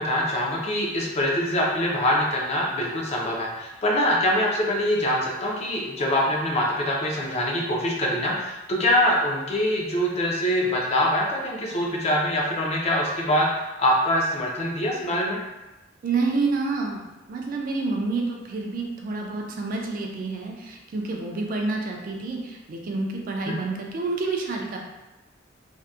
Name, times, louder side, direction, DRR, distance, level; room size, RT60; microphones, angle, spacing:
voice 1, 0.0-13.5 13.8-15.4 23.5-23.6, left 1 dB, 35° left, -2 dB, 0.4 m, -24 dB
voice 2, 16.0-17.0 17.3-24.8, right 3 dB, 45° right, 1 dB, 0.3 m, -28 dB
2.6 x 2.1 x 2.3 m, 1.1 s
head